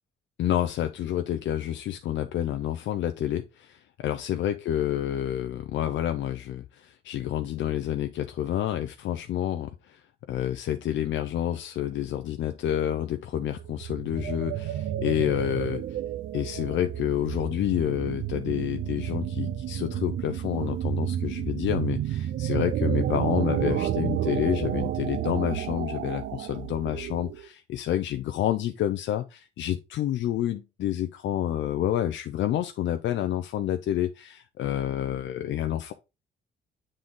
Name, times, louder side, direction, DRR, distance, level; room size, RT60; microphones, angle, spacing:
voice 1, 0.4-10.0 10.3-15.8 16.3-35.9, left 11 dB, 70° left, 0.5 m, -29 dB
sound 1, 13.3-27.5, right 10 dB, 70° right, 0.5 m, -31 dB
7.6 x 3.9 x 3.6 m
cardioid pair, 90°, 20 cm